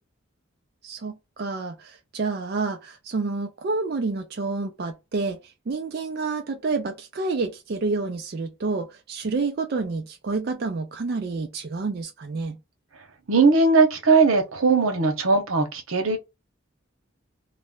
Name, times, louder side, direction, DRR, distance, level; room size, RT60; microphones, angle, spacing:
voice 1, 0.8-12.6, right 3 dB, 50° right, 0.4 m, -29 dB
voice 2, 13.3-16.2, right 4 dB, 85° right, 0.9 m, -19 dB
2.4 x 2.1 x 3.5 m
head